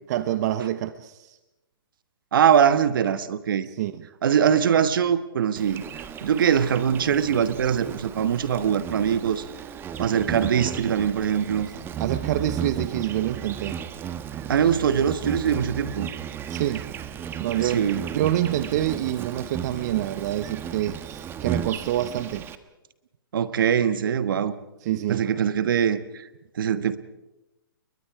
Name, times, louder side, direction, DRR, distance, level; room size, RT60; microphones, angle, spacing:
voice 1, 0.1-1.4 3.7-4.0 12.0-13.8 16.5-16.8 17.4-22.5 24.8-25.2, right 12 dB, 50° right, 12 dB, 1.0 m, -27 dB
voice 2, 2.3-3.7 4.2-5.8 6.2-9.4 10.0-11.7 14.5-16.1 17.6-18.0 23.3-24.5 25.1-26.3 26.6-27.0, right 8 dB, 65° right, 13 dB, 1.4 m, -22 dB
Insect, 5.6-22.6, right 8 dB, 20° right, 1.2 m, -35 dB
29.5 x 23.0 x 4.8 m, 0.97 s
hypercardioid pair, 130°, 12 cm